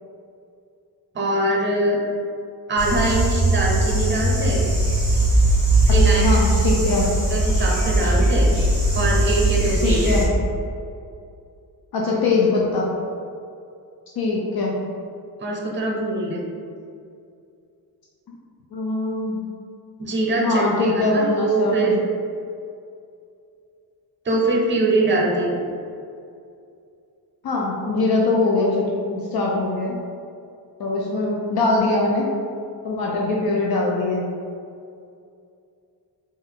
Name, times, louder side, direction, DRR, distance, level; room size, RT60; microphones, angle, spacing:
voice 1, 1.1-2.0 2.7-4.6 5.9-6.4 7.3-8.5 8.9-10.0 15.4-16.4 20.0-21.9 24.2-25.6, right 2 dB, 30° right, -1 dB, 0.6 m, -23 dB
sound 1, 2.8-10.3, right 1 dB, 5° right, 1.4 m, -19 dB
voice 2, 6.2-7.1 9.8-10.3 11.9-12.9 14.2-14.7 18.3-18.4 18.7-19.4 20.4-22.0 27.4-30.0 30.8-32.3 32.8-34.2, left 3 dB, 65° left, -3 dB, 0.5 m, -22 dB
3.6 x 2.5 x 3.7 m, 2.5 s
wide cardioid pair, 165°, 40 cm